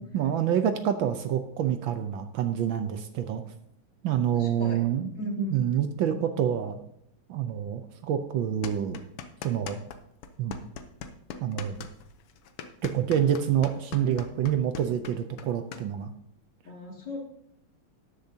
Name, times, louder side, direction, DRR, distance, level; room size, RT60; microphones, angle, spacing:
voice 1, 0.1-3.4 4.0-5.1 5.4-6.8 7.3-9.0 9.4-9.7 10.4-10.6 11.4-11.9 12.8-16.1, right 9 dB, 70° right, 8 dB, 1.3 m, -27 dB
voice 2, 4.3-4.8 5.2-5.6 16.6-17.2, left 1 dB, 55° left, -1 dB, 2.9 m, -36 dB
sound 1, 8.6-10.0 10.2-15.8, left 7 dB, 85° left, 1.7 m, -40 dB
13.0 x 10.5 x 2.8 m, 0.76 s
omnidirectional pair, 2.4 m